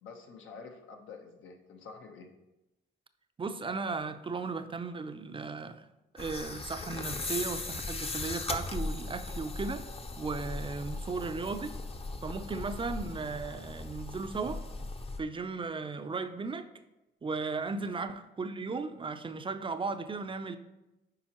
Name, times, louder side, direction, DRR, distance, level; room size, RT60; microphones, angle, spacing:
voice 1, 0.0-2.3 17.8-17.9, left 5 dB, 80° left, 3 dB, 1.0 m, -48 dB
voice 2, 3.4-5.9 6.1-9.8 10.2-11.7 12.2-14.6 15.2-16.7 17.2-20.6, right 4 dB, 25° right, 9 dB, 0.5 m, -36 dB
sound 1, 6.2-15.2, left 3 dB, 30° left, 0.7 m, -38 dB
8.6 x 5.1 x 2.9 m, 0.98 s
cardioid pair, 90°, 20 cm